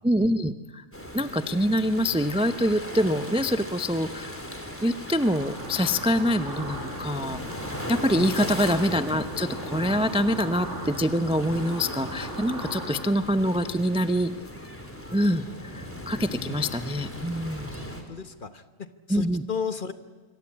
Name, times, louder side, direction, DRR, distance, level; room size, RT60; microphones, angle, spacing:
voice 1, 0.0-0.8 1.1-4.4 4.8-14.3 15.1-17.7 19.1-19.4, equal, 10° right, 11 dB, 0.3 m, -25 dB
sound 1, 0.9-18.0, equal, 5° left, 3.1 m, -38 dB
sound 2, 5.2-13.1, right 1 dB, 45° right, 4.7 m, -39 dB
voice 2, 8.1-8.4 16.4-16.6 18.1-19.9, left 6 dB, 35° left, 11 dB, 1.2 m, -35 dB
26.0 x 24.5 x 8.6 m, 1.3 s
omnidirectional pair, 1.7 m